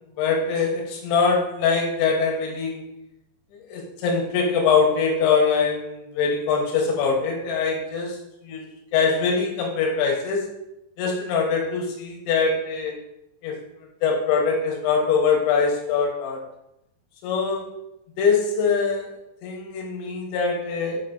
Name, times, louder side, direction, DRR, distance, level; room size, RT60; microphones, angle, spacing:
voice 1, 0.2-2.9 3.7-8.2 8.4-10.5 11.0-13.0 13.4-13.6 14.0-16.4 17.2-17.7 18.2-21.0, left 5 dB, 85° left, 0 dB, 3.2 m, -23 dB
6.8 x 3.8 x 3.8 m, 0.83 s
omnidirectional pair, 5.2 m